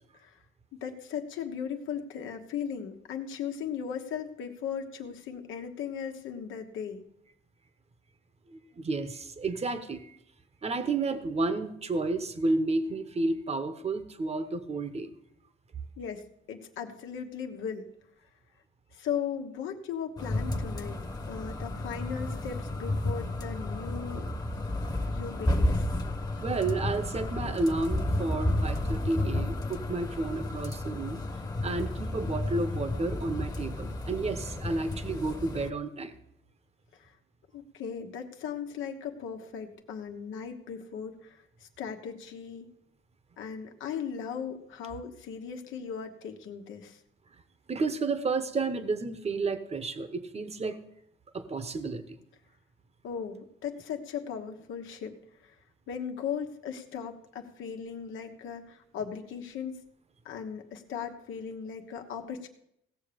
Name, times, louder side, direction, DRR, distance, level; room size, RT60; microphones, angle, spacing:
voice 1, 0.7-7.0 16.0-17.8 18.9-21.0 21.3-24.3 24.6-24.7 25.1-25.8 37.0-37.1 37.5-42.7 43.4-47.0 53.0-55.2 55.4-55.6 55.9-59.8 60.2-62.5, left 7 dB, 85° left, 5 dB, 1.2 m, -37 dB
voice 2, 8.5-10.2 10.6-15.1 26.4-31.2 31.6-36.1 47.7-50.8 51.3-52.2, right 3 dB, 30° right, 10 dB, 1.1 m, -31 dB
sound 1, 20.2-35.7, left 1 dB, 20° left, 1.1 m, -32 dB
17.0 x 6.9 x 5.1 m, 0.76 s
cardioid pair, 90°, 20 cm